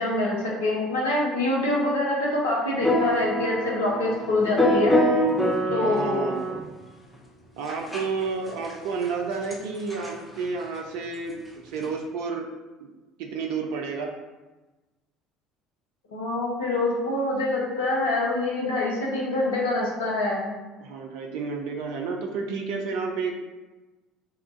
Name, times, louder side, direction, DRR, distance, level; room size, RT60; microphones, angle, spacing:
voice 1, 0.0-4.9 5.7-6.3 16.1-20.5, left 2 dB, 80° left, -3 dB, 0.7 m, -25 dB
sound 1, 2.8-6.6 7.7-8.0 8.7-8.8 9.1-9.2 9.5-9.6 9.9-10.1 11.8-11.9, equal, 5° left, 0.7 m, -24 dB
voice 2, 5.7-6.4 7.6-12.5 13.2-14.1 20.8-23.5, right 4 dB, 65° right, 1 dB, 0.4 m, -31 dB
3.0 x 2.4 x 3.6 m, 1.1 s
figure-of-eight pair, 60°, 0 cm